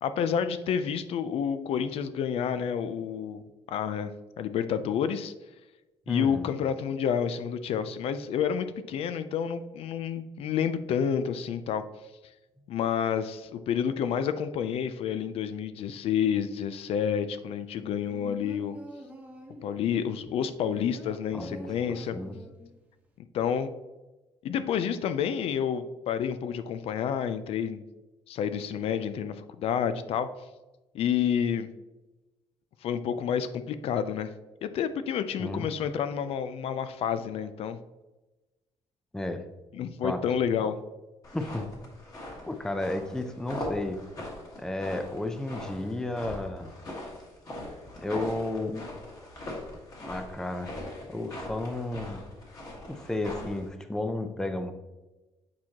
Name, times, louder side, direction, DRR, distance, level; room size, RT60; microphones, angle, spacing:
voice 1, 0.0-3.4 3.7-4.1 4.4-5.3 6.1-11.8 12.7-18.8 19.6-22.2 23.3-23.7 24.4-27.8 28.3-30.3 30.9-31.7 32.8-34.3 34.6-37.8 39.7-40.8, left 8 dB, 60° left, 12 dB, 0.4 m, -29 dB
voice 2, 6.1-6.5 21.3-21.7 22.1-22.4 35.4-35.7 39.1-39.4 40.0-40.2 41.3-41.7 42.5-44.0 44.6-46.7 48.0-48.8 50.1-50.7 51.0-52.2 52.9-54.7, left 2 dB, 5° left, 7 dB, 0.4 m, -32 dB
sound 1, 17.8-19.8 20.3-22.7 23.1-23.2, right 1 dB, 10° right, 1.0 m, -46 dB
sound 2, 41.2-53.7, left 1 dB, 35° left, 1.6 m, -41 dB
8.5 x 4.5 x 2.9 m, 1.1 s
cardioid pair, 165°, 11 cm